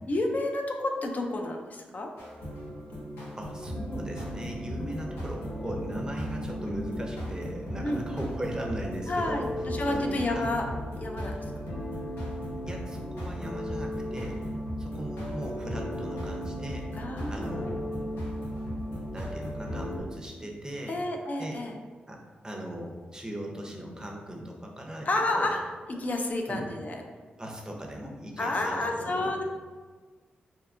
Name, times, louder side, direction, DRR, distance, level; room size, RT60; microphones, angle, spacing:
voice 1, 0.1-2.1 4.8-5.0 7.8-8.0 9.1-10.6 11.0-11.3 16.9-17.8 20.9-21.7 25.1-25.6 25.9-27.0 28.4-29.4, left 2 dB, 45° left, 2 dB, 0.3 m, -30 dB
sound 1, 2.2-20.0, equal, 90° left, 0.7 m, -36 dB
voice 2, 3.4-10.5 12.7-14.5 14.8-16.9 17.3-17.9 19.1-21.0 21.4-21.6 22.1-22.2 22.4-25.1 25.3-25.5 26.5-26.7 27.4-29.4, right 1 dB, 20° right, 0 dB, 0.5 m, -38 dB
2.7 x 2.2 x 2.4 m, 1.4 s
cardioid pair, 50°, 4 cm